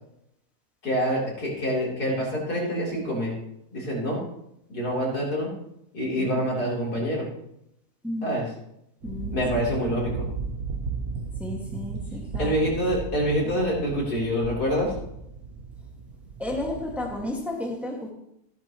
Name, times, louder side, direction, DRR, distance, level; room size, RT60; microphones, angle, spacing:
voice 1, 0.8-3.3 3.7-4.2 4.7-5.5 5.9-7.3 8.2-8.5 9.3-10.3 12.4-14.9, equal, 85° left, -4 dB, 4.4 m, -26 dB
voice 2, 9.0-9.4 11.4-12.5 16.4-18.1, left 1 dB, ahead, -1 dB, 1.9 m, -32 dB
sound 1, 9.0-17.3, right 4 dB, 70° right, 1.6 m, -35 dB
14.5 x 11.5 x 3.1 m, 0.79 s
omnidirectional pair, 1.6 m